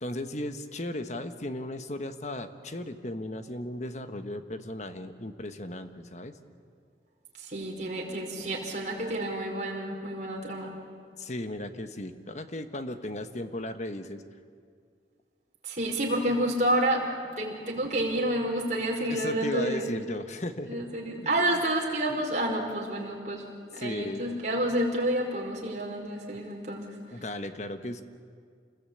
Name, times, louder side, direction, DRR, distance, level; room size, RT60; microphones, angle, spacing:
voice 1, 0.0-6.3 8.3-8.5 11.2-14.2 19.1-20.8 21.2-21.6 22.1-22.2 23.8-24.2 27.1-28.0, left 1 dB, 40° left, 9 dB, 1.3 m, -36 dB
voice 2, 7.4-10.7 15.7-17.1 17.4-19.9 20.7-23.4 23.7-26.9, right 1 dB, 45° right, -1 dB, 4.9 m, -29 dB
27.5 x 20.5 x 8.7 m, 2.1 s
head